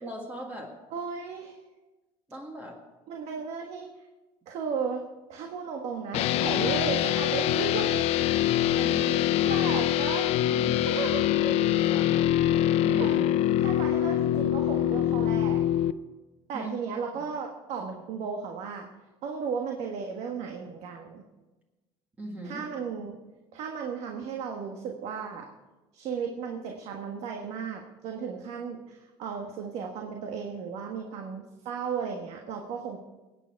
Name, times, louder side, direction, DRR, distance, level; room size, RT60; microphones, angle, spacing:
voice 1, 0.0-0.8 2.3-2.8 8.4-9.3 10.5-11.1 11.4-12.3 12.8-13.2 16.5-16.7 22.2-22.6, right 1 dB, 15° right, 0 dB, 1.8 m, -39 dB
voice 2, 0.9-1.6 3.1-3.9 4.5-8.1 9.1-10.3 10.9-11.3 12.5-12.6 13.0-13.3 13.6-15.6 16.5-18.9 19.2-21.2 22.4-23.2 23.5-25.5 25.9-33.0, right 6 dB, 60° right, 2 dB, 1.4 m, -35 dB
sound 1, 6.1-15.9, left 12 dB, 60° left, 0.5 m, -24 dB
21.0 x 9.3 x 4.6 m, 1.1 s
cardioid pair, 155°, 12 cm